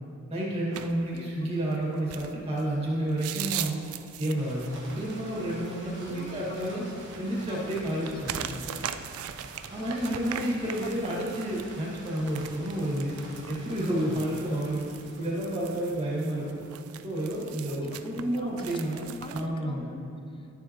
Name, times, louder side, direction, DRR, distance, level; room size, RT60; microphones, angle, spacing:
voice 1, 0.3-3.8 4.2-6.8 7.2-8.4 9.7-13.1 13.5-14.9 15.2-16.6 17.0-19.9, right 1 dB, 30° right, -6 dB, 2.2 m, -30 dB
sound 1, 0.7-19.5, right 10 dB, 80° right, 0.4 m, -41 dB
sound 2, 4.4-17.0, right 2 dB, 60° right, 1.6 m, -48 dB
voice 2, 6.1-7.7 8.0-8.2 8.5-9.0 9.5-10.5 10.8-11.0 17.4-20.5, left 2 dB, 25° left, 5 dB, 0.6 m, -46 dB
12.0 x 7.1 x 3.2 m, 2.5 s
head